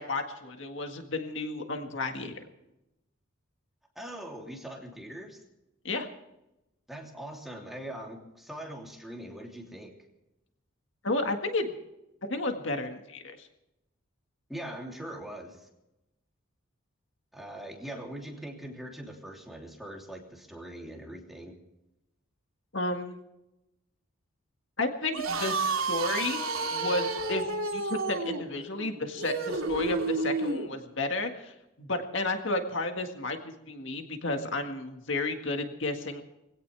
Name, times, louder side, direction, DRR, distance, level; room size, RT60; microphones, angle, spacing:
voice 1, 0.0-2.4 5.8-6.1 11.0-11.7 12.3-13.5 22.7-23.2 24.8-26.4 26.7-33.4 33.7-36.2, left 2 dB, 65° left, 5 dB, 1.8 m, -32 dB
voice 2, 3.9-5.4 6.9-9.9 14.5-15.7 17.3-21.5, right 1 dB, ahead, -1 dB, 3.1 m, -42 dB
sound 1, 25.0-30.7, right 3 dB, 85° right, 2.6 m, -31 dB
22.5 x 17.0 x 3.5 m, 0.91 s
head